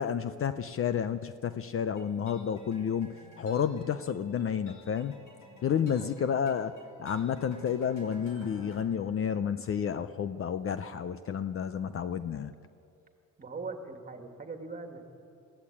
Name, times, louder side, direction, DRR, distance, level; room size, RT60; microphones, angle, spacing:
voice 1, 0.0-5.2 5.6-12.5, left 8 dB, 45° left, 12 dB, 0.6 m, -31 dB
sound 1, 1.9-8.8, left 3 dB, 70° left, 4.7 m, -53 dB
voice 2, 5.8-6.2 13.4-15.1, right 3 dB, 25° right, 4 dB, 2.1 m, -41 dB
21.5 x 16.0 x 8.7 m, 2.8 s
cardioid pair, 140°, 31 cm